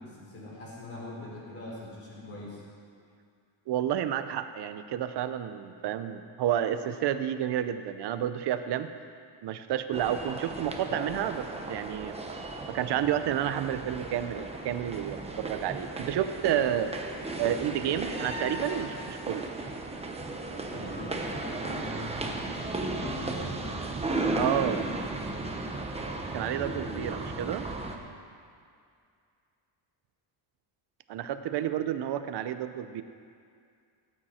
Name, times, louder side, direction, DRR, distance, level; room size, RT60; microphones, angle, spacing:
voice 1, 0.0-2.6 20.7-23.7, left 2 dB, 30° left, -5 dB, 3.4 m, -42 dB
voice 2, 3.7-8.9 9.4-12.2 12.7-16.9 17.4-19.5 24.3-24.9 26.3-27.6 31.1-33.0, right 10 dB, 55° right, 10 dB, 0.7 m, -30 dB
sound 1, 9.9-28.0, right 2 dB, 15° right, 0.8 m, -35 dB
17.5 x 8.8 x 4.3 m, 2.3 s
cardioid pair, 160°, 48 cm